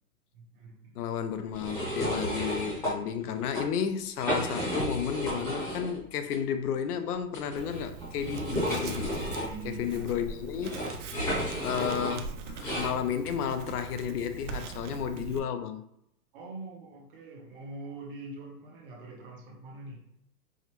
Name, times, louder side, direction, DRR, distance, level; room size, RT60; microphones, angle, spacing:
voice 1, 0.3-1.0 8.2-8.4 9.4-10.1 16.3-20.0, right 3 dB, 35° right, 0.8 m, -44 dB
voice 2, 1.0-9.1 9.6-10.9 11.6-15.8, left 8 dB, 75° left, 0.6 m, -32 dB
sound 1, 1.5-2.9 3.3-3.6 4.1-5.9 6.3-6.4 7.3-12.9, equal, 5° left, 0.7 m, -33 dB
Writing, 7.6-15.4, right 7 dB, 55° right, 0.5 m, -43 dB
4.7 x 2.2 x 2.9 m
hypercardioid pair, 165°, 46 cm